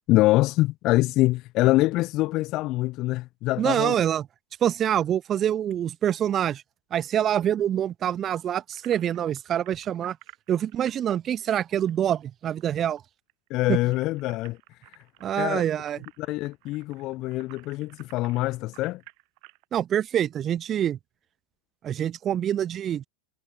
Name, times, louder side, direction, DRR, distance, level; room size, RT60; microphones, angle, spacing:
voice 1, 0.1-3.9 13.5-14.6 15.4-15.6 16.2-19.0, left 18 dB, 40° left, 0.5 m, -24 dB
voice 2, 3.6-4.3 4.6-6.6 6.9-10.2 10.5-13.0 13.7-13.8 15.2-16.0 19.7-21.0 21.8-23.0, right 10 dB, 25° right, 1.0 m, -25 dB
sound 1, 8.7-12.6 12.9-13.0 13.3-19.6, right 40 dB or more, 45° right, 6.7 m, -53 dB
figure-of-eight pair, 90°, 0 cm